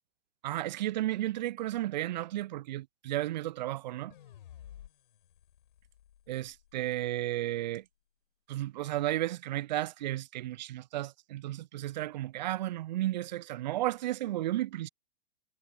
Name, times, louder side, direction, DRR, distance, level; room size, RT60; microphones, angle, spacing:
voice 1, 0.4-4.1 6.3-7.8 8.5-14.9, right 15 dB, 50° right, 0.4 m, -33 dB
sound 1, 4.1-7.3, left 11 dB, 55° left, 4.5 m, -54 dB
figure-of-eight pair, 105°, 30 cm